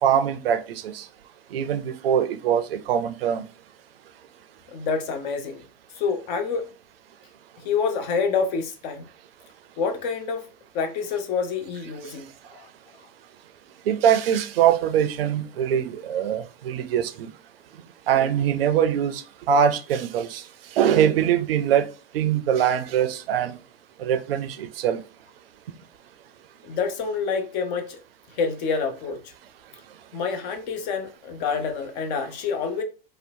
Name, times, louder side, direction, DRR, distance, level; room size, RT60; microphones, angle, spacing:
voice 1, 0.0-1.1 1.5-3.5 13.9-17.3 18.1-20.4 20.7-21.9 22.1-23.6 24.0-25.0, right 9 dB, 70° right, 0.5 m, -22 dB
voice 2, 4.7-5.6 6.0-6.6 7.6-9.0 9.8-10.4 10.7-12.7 26.6-28.0 28.4-29.2 30.1-32.8, left 5 dB, 45° left, 0.6 m, -27 dB
2.7 x 2.0 x 2.6 m
hypercardioid pair, 95°, 30 cm